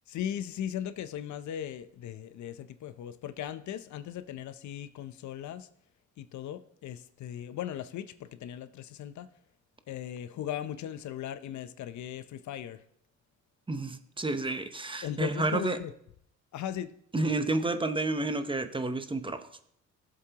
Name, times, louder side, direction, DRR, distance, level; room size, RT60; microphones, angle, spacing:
voice 1, 0.1-5.7 6.2-9.3 9.9-12.8 15.0-15.9 16.5-17.3, left 10 dB, 70° left, 0.7 m, -38 dB
voice 2, 13.7-15.8 17.1-19.5, right 2 dB, 15° right, 0.8 m, -30 dB
16.0 x 7.7 x 2.9 m
cardioid pair, 90°, 30 cm